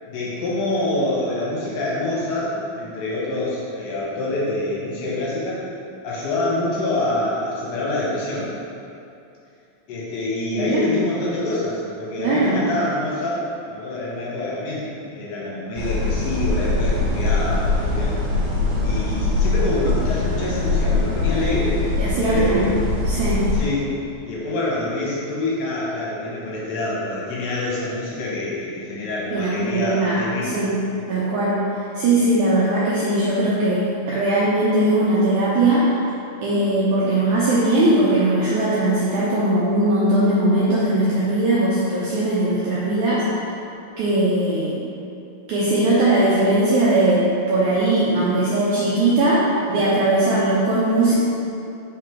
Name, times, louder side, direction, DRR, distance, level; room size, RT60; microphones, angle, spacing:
voice 1, 0.1-5.6 6.0-8.5 9.9-18.2 18.8-22.7 23.5-23.9 24.2-30.6 30.9-31.1, left 2 dB, 75° left, -6 dB, 2.5 m, -26 dB
voice 2, 12.2-12.6 22.0-22.7 23.1-23.5 29.3-30.7 31.1-31.6 31.9-35.9 36.4-43.2 44.0-44.8 45.5-51.1, right 2 dB, 80° right, -8 dB, 1.7 m, -19 dB
sound 1, 15.7-23.6, left 2 dB, 60° right, 2.2 m, -22 dB
5.5 x 3.8 x 4.5 m, 2.7 s
omnidirectional pair, 4.3 m